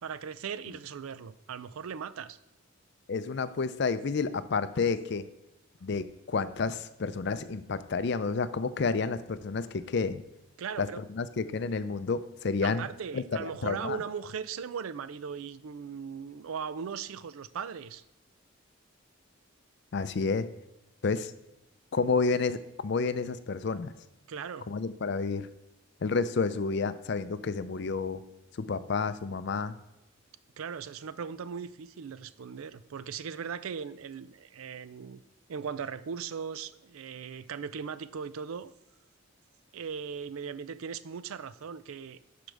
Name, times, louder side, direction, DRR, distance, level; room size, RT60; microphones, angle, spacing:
voice 1, 0.0-2.4 10.6-11.1 12.6-18.0 24.3-24.7 30.6-35.2 35.5-38.7 39.7-42.2, right 6 dB, 80° right, 15 dB, 0.4 m, -38 dB
voice 2, 3.1-5.2 5.8-10.2 10.8-12.9 13.1-14.0 19.9-20.5 21.0-21.3 21.9-23.9 24.7-25.5 26.0-28.2 28.6-29.8, left 4 dB, 55° left, 13 dB, 0.4 m, -30 dB
12.5 x 5.1 x 3.4 m, 0.94 s
head